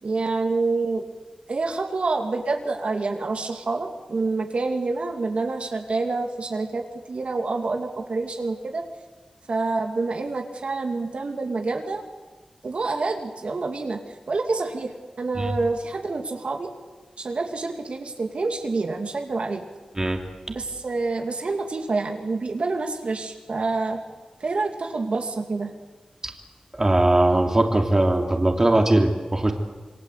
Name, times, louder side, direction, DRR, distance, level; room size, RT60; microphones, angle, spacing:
voice 1, 0.0-1.1 1.5-8.8 9.5-12.0 12.6-16.7 17.2-19.6 20.5-24.0 24.4-25.7, right 3 dB, 65° right, 3 dB, 2.5 m, -27 dB
voice 2, 26.8-29.5, right 1 dB, 25° right, 3 dB, 2.9 m, -20 dB
27.0 x 23.5 x 8.3 m, 1.2 s
wide cardioid pair, 110°, 2 cm